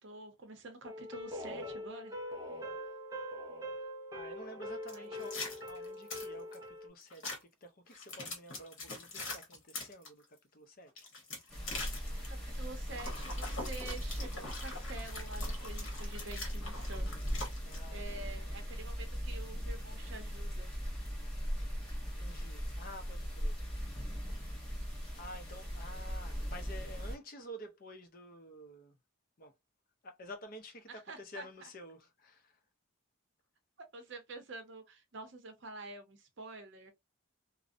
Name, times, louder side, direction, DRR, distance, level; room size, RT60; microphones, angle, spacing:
voice 1, 0.0-2.2 4.9-5.3 12.3-17.2 17.9-20.7 30.9-31.7 33.9-36.9, right 2 dB, 55° right, 0.6 m, -48 dB
sound 1, 0.8-6.9, left 1 dB, 15° right, 0.4 m, -43 dB
voice 2, 4.1-5.4 5.7-11.1 17.6-18.2 22.2-23.6 25.2-29.0 29.4-29.5 30.0-32.6, equal, 40° left, 0.5 m, -50 dB
sound 2, 4.9-6.6 7.1-7.4 7.9-10.1 10.9-12.3 12.9-17.8, left 3 dB, 65° left, 1.0 m, -43 dB
sound 3, 11.5-27.2, equal, 5° left, 0.8 m, -39 dB
2.5 x 2.0 x 2.5 m
head